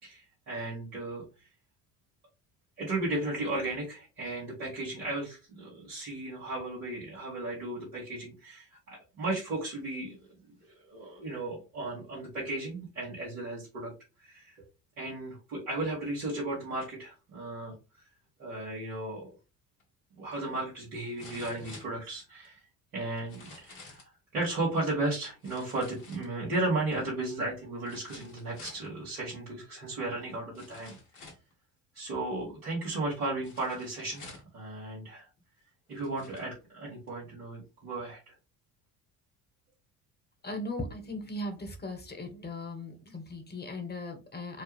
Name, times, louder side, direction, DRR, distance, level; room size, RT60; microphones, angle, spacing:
voice 1, 0.0-1.5 2.8-10.2 10.6-13.9 14.2-14.6 15.0-18.0 18.4-19.3 20.1-22.6 22.9-31.0 31.9-35.3 35.9-38.3, right 2 dB, 80° right, -7 dB, 1.9 m, -35 dB
sound 1, 19.8-19.9 21.2-22.5 23.2-24.1 25.4-26.6 27.8-28.9 29.9-30.0 30.5-31.5 33.4-34.6 35.4-35.5 35.9-36.5 37.1-37.2, left 3 dB, 80° left, 1.6 m, -50 dB
voice 2, 40.4-44.6, left 1 dB, 20° left, 5 dB, 1.3 m, -38 dB
4.5 x 2.3 x 3.3 m, 0.29 s
hypercardioid pair, 60°, 43 cm